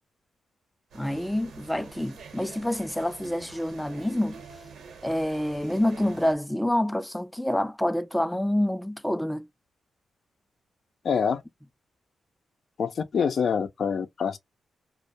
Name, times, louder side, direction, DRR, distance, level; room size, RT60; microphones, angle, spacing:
voice 1, 0.9-4.4 5.0-9.5, left 1 dB, 5° left, 0.3 m, -27 dB
sound 1, 0.9-6.4, right 5 dB, 85° right, 0.9 m, -47 dB
voice 2, 11.0-11.4 12.8-14.4, left 6 dB, 65° left, 0.5 m, -26 dB
2.2 x 2.1 x 2.6 m
cardioid pair, 90°, 0 cm